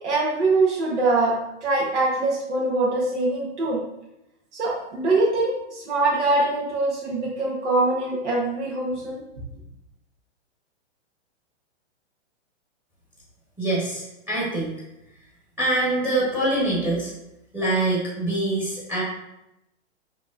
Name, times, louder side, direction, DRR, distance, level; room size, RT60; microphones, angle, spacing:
voice 1, 0.0-3.8 4.5-9.2, right 2 dB, 80° right, -5 dB, 1.2 m, -23 dB
voice 2, 13.6-14.7 15.6-17.1 17.5-19.0, right 2 dB, 5° right, -6 dB, 1.2 m, -24 dB
5.0 x 3.0 x 2.5 m, 0.88 s
hypercardioid pair, 145°, 35 cm